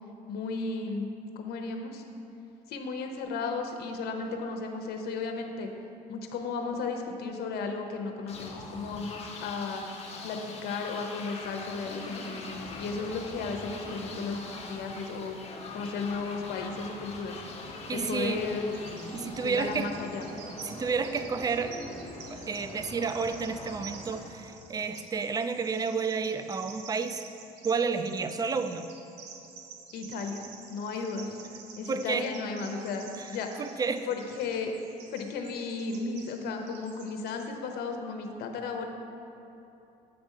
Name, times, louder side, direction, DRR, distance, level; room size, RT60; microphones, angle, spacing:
voice 1, 0.3-1.1 1.4-2.0 2.7-5.7 6.1-9.8 10.2-15.4 15.7-17.4 17.9-18.7 19.4-20.3 29.9-31.4 31.8-33.6 34.1-34.7 35.1-38.9, left 4 dB, 70° left, 4 dB, 0.8 m, -34 dB
sound 1, 8.3-25.0, left 3 dB, 40° left, 1.1 m, -42 dB
voice 2, 17.9-18.4 19.1-19.9 20.7-21.8 22.3-27.2 27.6-28.9 31.9-32.3 33.2-33.3 33.6-34.1, right 5 dB, 20° right, 10 dB, 0.3 m, -30 dB
Bird vocalization bird call bird song, 18.7-37.5, right 6 dB, 80° right, 0.7 m, -50 dB
8.0 x 3.5 x 5.4 m, 2.9 s
cardioid pair, 95°, 17 cm